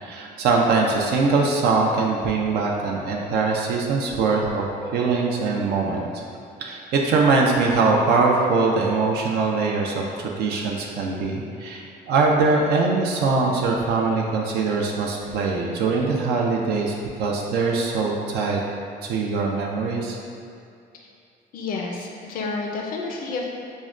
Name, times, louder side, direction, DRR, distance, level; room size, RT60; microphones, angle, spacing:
voice 1, 0.0-6.1 6.6-16.9 17.2-18.6 19.0-20.2, right 4 dB, 75° right, -1 dB, 0.5 m, -22 dB
voice 2, 21.5-23.5, left 3 dB, 55° left, 0 dB, 0.5 m, -30 dB
6.1 x 2.1 x 2.4 m, 2.5 s
cardioid pair, 110°, 17 cm